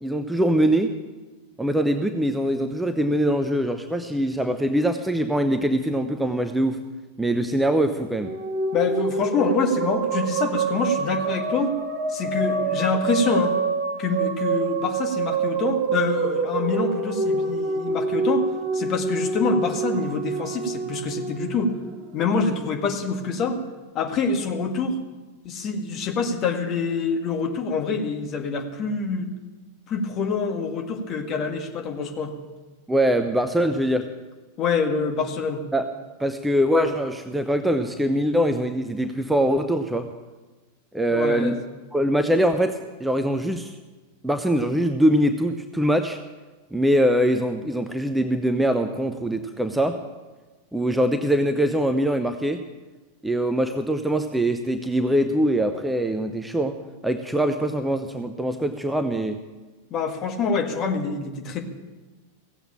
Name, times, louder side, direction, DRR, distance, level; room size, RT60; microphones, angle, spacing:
voice 1, 0.0-1.0 1.6-6.8 7.2-8.3 32.9-34.1 35.7-35.9 36.2-40.1 40.9-41.6 41.9-43.7 44.2-46.2 46.7-50.0 50.7-52.6 53.2-56.8 57.0-59.4, equal, 5° right, 8 dB, 0.7 m, -23 dB
sound 1, 8.1-22.6, right 4 dB, 45° right, 1.5 m, -26 dB
voice 2, 8.7-11.7 12.1-13.5 14.0-18.5 18.7-21.8 22.1-23.6 23.9-25.0 25.4-29.3 29.9-32.3 34.6-35.6 41.1-41.5 59.9-61.6, left 4 dB, 35° left, 4 dB, 1.8 m, -26 dB
16.0 x 8.0 x 8.8 m, 1.2 s
figure-of-eight pair, 90°, 0 cm